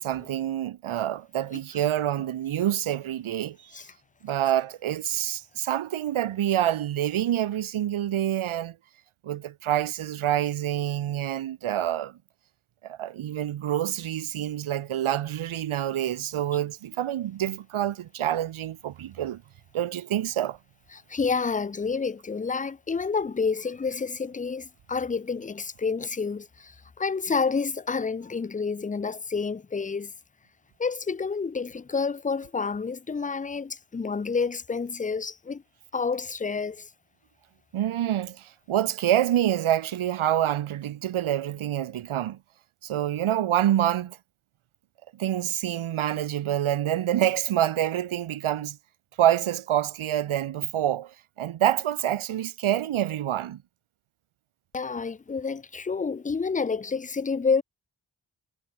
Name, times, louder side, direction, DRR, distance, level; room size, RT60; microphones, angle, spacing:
voice 1, 0.0-3.7 4.2-8.8 9.2-12.2 12.8-19.4 19.7-20.6 37.7-42.4 42.8-44.2 45.1-48.8 49.2-53.6, right 11 dB, 80° right, 0.7 m, -27 dB
voice 2, 21.1-26.7 27.0-30.1 30.8-35.6 35.9-36.9 54.7-57.6, left 5 dB, 20° left, 0.4 m, -29 dB
cardioid pair, 40°, 48 cm